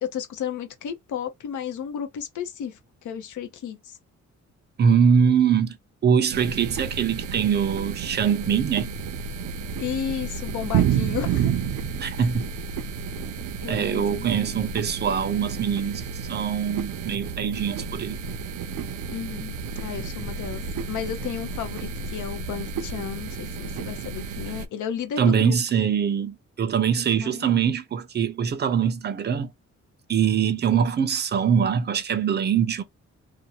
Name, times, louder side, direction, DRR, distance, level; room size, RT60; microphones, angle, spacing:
voice 1, 0.0-4.0 9.8-11.5 13.6-14.3 19.1-20.6 20.9-25.6 27.2-27.5, left 8 dB, 80° left, 0.8 m, -33 dB
voice 2, 4.8-5.8 6.0-8.9 12.0-12.5 13.7-16.0 16.3-18.2 25.2-29.5 30.1-32.8, right 7 dB, 35° right, 0.5 m, -23 dB
sound 1, 6.3-24.7, right 6 dB, 90° right, 0.5 m, -31 dB
2.6 x 2.1 x 2.8 m
wide cardioid pair, 150°, 30 cm